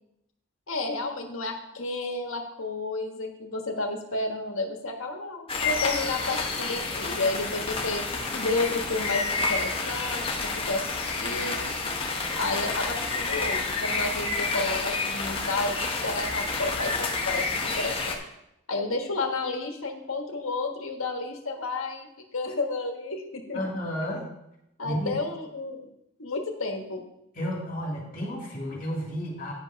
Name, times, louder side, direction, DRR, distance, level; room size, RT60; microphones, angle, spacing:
voice 1, 0.7-8.0 8.3-11.7 12.4-18.2 18.7-22.1 22.3-23.6 24.8-25.9 26.2-27.0, left 3 dB, 80° left, 3 dB, 1.5 m, -31 dB
sound 1, 5.5-18.1, left 3 dB, 25° left, 1.0 m, -29 dB
voice 2, 23.5-24.2 24.8-25.2 27.4-29.5, equal, 40° left, -2 dB, 2.5 m, -32 dB
9.8 x 5.5 x 5.8 m, 0.83 s
head